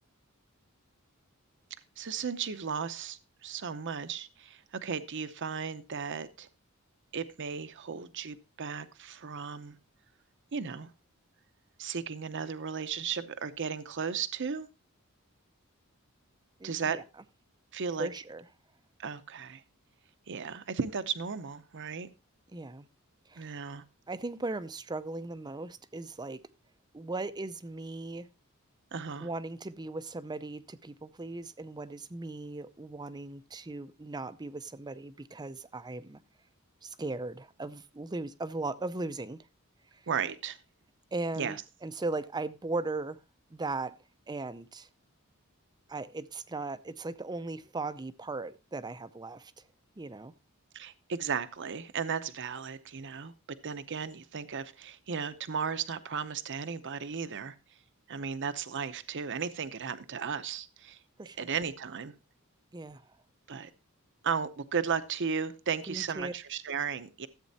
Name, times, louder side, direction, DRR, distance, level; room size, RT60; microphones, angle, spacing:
voice 1, 2.0-6.5 7.1-9.8 10.5-10.9 11.8-14.7 16.6-17.0 17.7-18.1 19.0-19.6 20.3-22.1 23.4-23.8 28.9-29.3 40.1-40.6 41.4-41.6 50.7-53.3 53.6-57.5 58.1-61.0 61.4-62.1 63.5-63.7 64.2-67.3, right 6 dB, 55° right, 0.7 m, -35 dB
voice 2, 16.6-17.0 18.0-18.5 22.5-22.9 23.3-23.6 24.1-26.4 26.9-28.3 29.2-36.2 36.8-39.4 41.1-43.2 43.5-43.9 44.3-44.9 45.9-49.5 50.0-50.3 61.2-61.5 62.7-63.0 65.9-66.3, right 2 dB, 20° right, 0.5 m, -38 dB
14.0 x 8.2 x 2.7 m
head